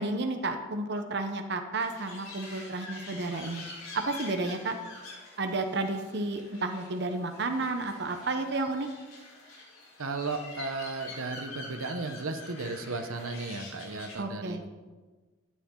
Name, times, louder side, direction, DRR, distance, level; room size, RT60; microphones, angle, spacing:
voice 1, 0.0-3.6 3.9-4.8 5.4-8.9 14.2-14.6, right 2 dB, 55° right, 6 dB, 0.9 m, -31 dB
sound 1, 1.8-14.1, left 2 dB, 80° left, 3.8 m, -46 dB
voice 2, 10.0-14.7, right 3 dB, 90° right, 7 dB, 1.0 m, -35 dB
12.5 x 10.0 x 3.8 m, 1.3 s
head